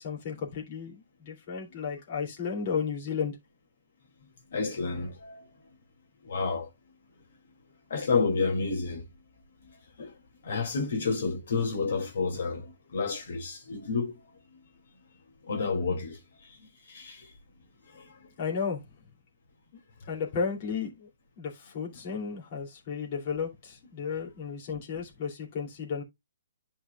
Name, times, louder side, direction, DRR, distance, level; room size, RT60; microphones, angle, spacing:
voice 1, 0.0-3.4 18.4-18.8 20.1-21.1 21.4-26.0, left 6 dB, 35° left, 2.7 m, -33 dB
voice 2, 4.5-5.5 6.2-6.7 7.9-9.0 10.0-10.1 10.4-14.1 15.5-16.2 16.5-16.6 16.9-17.3 17.9-18.2, left 4 dB, 60° left, 2.4 m, -30 dB
11.5 x 4.6 x 2.3 m
hypercardioid pair, 165°, 0 cm